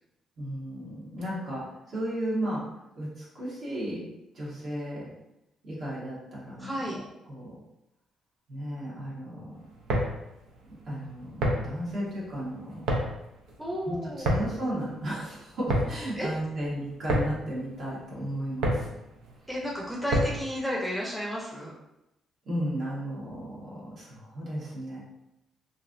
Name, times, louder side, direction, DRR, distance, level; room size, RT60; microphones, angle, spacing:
voice 1, 0.4-2.6 2.9-4.0 4.3-5.1 5.6-7.0 7.3-7.5 8.5-9.6 10.9-12.9 13.9-18.9 22.4-25.0, right 1 dB, 60° right, -7 dB, 1.4 m, -34 dB
voice 2, 6.6-7.0 13.6-14.3 16.1-16.3 19.5-21.7, equal, ahead, -4 dB, 0.6 m, -32 dB
sound 1, 9.7-20.6, equal, 85° right, 0.6 m, -31 dB
3.1 x 2.6 x 2.5 m, 0.88 s
cardioid pair, 90°, 0 cm